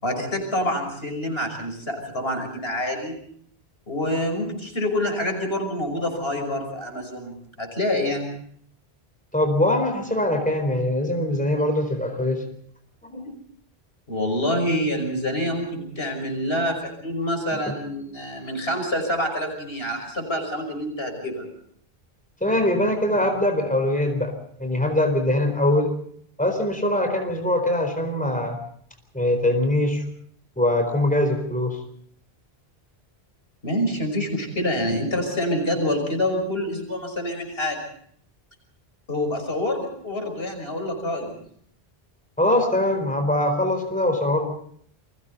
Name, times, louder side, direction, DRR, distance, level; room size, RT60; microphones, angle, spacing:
voice 1, 0.0-3.2 3.9-8.3 14.1-21.5 33.6-37.8 39.1-41.3, left 1 dB, 70° left, 4 dB, 6.1 m, -26 dB
voice 2, 9.3-12.4 13.1-13.3 17.5-17.7 22.4-24.3 24.6-25.9 26.4-28.6 29.1-30.0 30.6-31.8 42.4-44.5, left 1 dB, 5° left, 5 dB, 4.3 m, -22 dB
29.0 x 23.5 x 4.1 m, 0.62 s
omnidirectional pair, 1.1 m